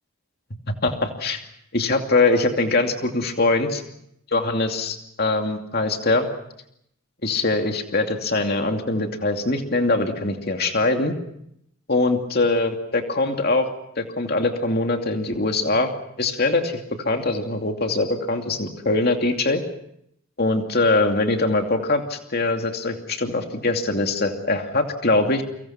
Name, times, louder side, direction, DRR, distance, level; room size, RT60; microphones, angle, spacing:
voice 1, 0.7-1.4 1.7-3.8 4.3-6.3 7.2-11.1 11.9-13.7 14.0-15.9 16.2-19.6 20.4-25.4, left 2 dB, 45° left, 4 dB, 2.6 m, -22 dB
30.0 x 24.5 x 5.9 m, 0.75 s
head